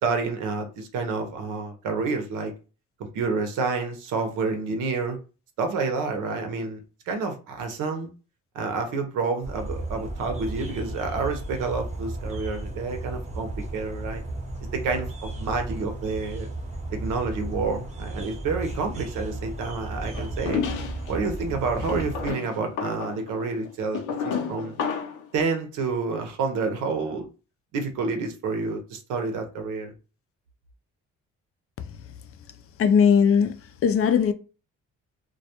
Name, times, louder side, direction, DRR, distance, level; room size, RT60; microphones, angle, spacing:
voice 1, 0.0-2.5 3.1-5.2 5.6-8.1 8.5-14.2 14.7-16.5 16.9-20.7 21.1-24.8 25.3-27.3 27.7-29.9, right 4 dB, 85° right, 0.7 m, -29 dB
sound 1, 9.4-22.3, right 2 dB, 25° right, 0.7 m, -34 dB
sound 2, 20.1-21.1 21.8-25.3, left 6 dB, 90° left, 0.7 m, -31 dB
voice 2, 32.8-33.6 33.8-34.3, left 7 dB, 50° left, 0.4 m, -18 dB
2.2 x 2.2 x 2.8 m
cardioid pair, 90°, 30 cm